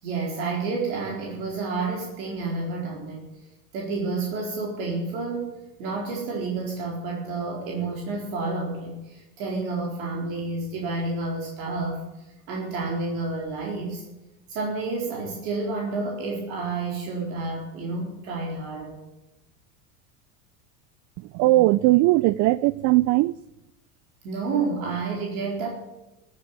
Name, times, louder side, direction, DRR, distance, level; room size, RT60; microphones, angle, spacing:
voice 1, 0.0-3.3 3.7-5.5 5.8-12.0 12.5-14.0 14.5-19.0 24.2-25.7, right 3 dB, 70° right, 4.4 m, -30 dB
voice 2, 21.2-23.4, right 18 dB, 45° right, 0.4 m, -19 dB
13.5 x 10.5 x 9.6 m
supercardioid pair, 105°, 43 cm